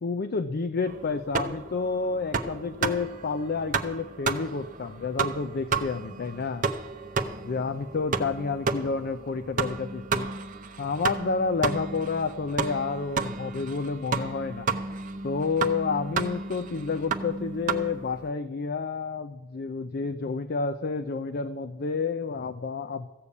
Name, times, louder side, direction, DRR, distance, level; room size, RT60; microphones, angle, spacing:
voice 1, 0.0-6.7 7.4-10.3 10.8-14.7 15.2-23.1, left 4 dB, 50° left, 9 dB, 0.5 m, -30 dB
sound 1, 0.9-18.3, right 4 dB, 40° right, 0.7 m, -32 dB
14.5 x 6.9 x 8.3 m, 1.1 s
head